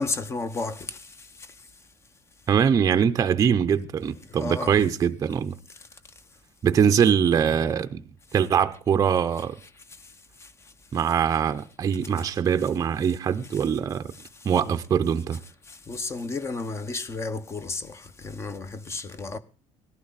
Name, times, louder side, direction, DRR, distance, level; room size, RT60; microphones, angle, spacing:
voice 1, 0.0-1.7 4.0-4.8 5.7-5.9 8.3-8.4 9.3-10.1 10.4-11.5 12.2-12.3 12.5-12.7 12.9-13.2 13.4-14.8 15.3-19.4, left 3 dB, 25° left, 1.0 m, -35 dB
voice 2, 2.5-5.5 6.6-8.0 8.3-9.6 10.9-14.1 14.4-15.4, right 7 dB, 30° right, 0.7 m, -22 dB
18.0 x 12.5 x 4.1 m
cardioid pair, 135°, 11 cm